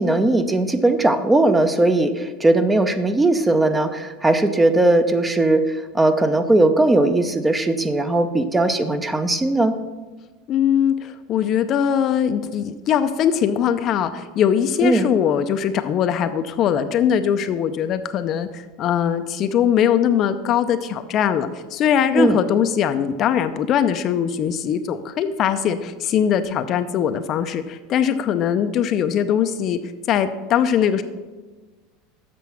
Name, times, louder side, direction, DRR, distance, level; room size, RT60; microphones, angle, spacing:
voice 1, 0.0-9.8 14.8-15.1 22.1-22.4, right 2 dB, 10° right, 9 dB, 0.6 m, -18 dB
voice 2, 10.5-29.8 30.1-31.0, left 9 dB, 45° left, 9 dB, 0.5 m, -21 dB
7.6 x 6.0 x 5.7 m, 1.3 s
supercardioid pair, 105°, 0 cm